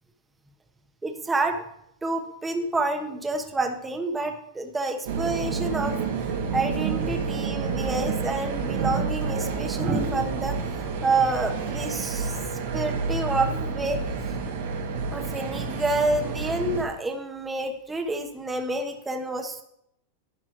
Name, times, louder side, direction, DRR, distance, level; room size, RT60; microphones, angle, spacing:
voice 1, 1.0-1.6 2.0-6.0 6.5-12.4 12.7-14.0 15.1-19.6, right 2 dB, 10° right, 4 dB, 1.1 m, -28 dB
sound 1, 5.1-16.8, right 5 dB, 80° right, 1.9 m, -29 dB
sound 2, 9.7-12.8 14.3-14.6, right 3 dB, 35° right, 1.8 m, -33 dB
11.0 x 9.5 x 3.1 m, 0.76 s
supercardioid pair, 135°, 0 cm